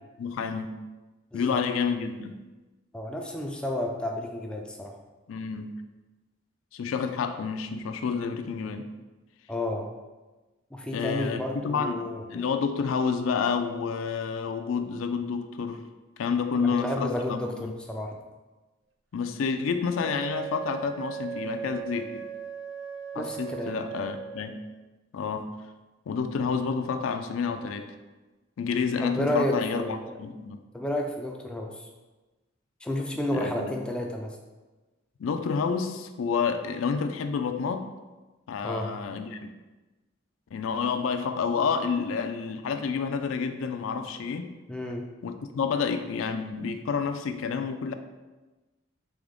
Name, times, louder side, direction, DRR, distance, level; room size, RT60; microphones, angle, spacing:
voice 1, 0.2-0.7 1.3-2.4 5.3-5.7 6.7-8.9 10.9-12.0 12.3-15.8 16.2-17.7 19.1-22.2 23.1-24.6 25.1-25.5 26.1-28.0 28.6-30.6 33.3-33.8 35.2-37.9 38.5-39.4 40.5-44.5 45.2-47.9, left 5 dB, 90° left, 7 dB, 0.4 m, -29 dB
voice 2, 2.9-5.0 9.5-9.9 10.7-12.5 16.6-18.1 23.1-23.8 29.0-30.2 30.7-31.9 32.8-34.4 38.6-38.9 44.7-45.1, left 1 dB, 5° left, 1 dB, 0.3 m, -31 dB
Wind instrument woodwind instrument, 20.0-24.6, right 9 dB, 65° right, 0.4 m, -38 dB
3.5 x 3.4 x 3.7 m, 1.2 s
head